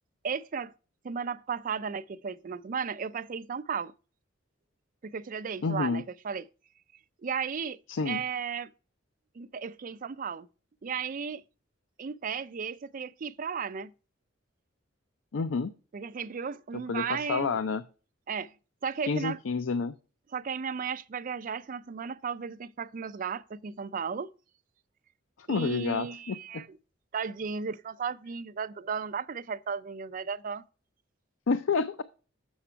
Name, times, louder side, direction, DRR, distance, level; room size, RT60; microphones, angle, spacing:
voice 1, 0.2-0.7 1.0-3.9 5.0-6.5 7.2-7.8 8.0-8.7 9.4-10.5 10.8-11.4 12.0-13.9 15.9-17.5 18.3-18.5 18.8-19.4 20.3-24.3 25.5-26.8 27.1-30.6, right 6 dB, 45° right, 0.4 m, -35 dB
voice 2, 5.6-6.0 7.9-8.2 15.3-15.7 16.7-17.8 19.1-19.9 25.4-26.6 31.5-32.0, left 4 dB, 75° left, 0.5 m, -29 dB
7.1 x 5.9 x 4.4 m
head